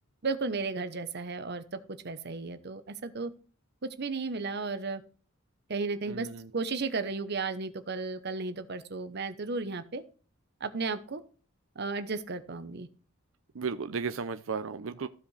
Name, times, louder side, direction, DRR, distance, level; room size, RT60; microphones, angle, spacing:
voice 1, 0.2-3.3 3.8-5.0 5.7-6.3 6.5-10.0 10.6-11.2 11.7-12.9, right 4 dB, 55° right, 0.9 m, -34 dB
voice 2, 6.1-6.5 13.5-15.1, right 5 dB, 75° right, 0.5 m, -34 dB
15.0 x 5.1 x 3.3 m
head